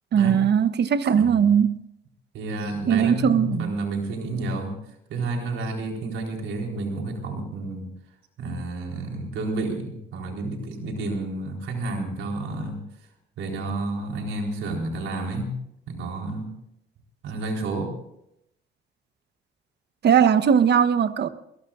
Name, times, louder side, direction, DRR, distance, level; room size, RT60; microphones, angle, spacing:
voice 1, 0.1-1.8 2.9-3.8 20.0-21.3, right 8 dB, 60° right, 1.1 m, -19 dB
voice 2, 1.1-1.6 2.3-4.8 5.1-7.9 8.4-12.8 13.4-15.6 15.9-16.5 17.2-18.0, right 2 dB, 85° right, 4.0 m, -30 dB
23.0 x 21.0 x 2.5 m
cardioid pair, 90°, 20 cm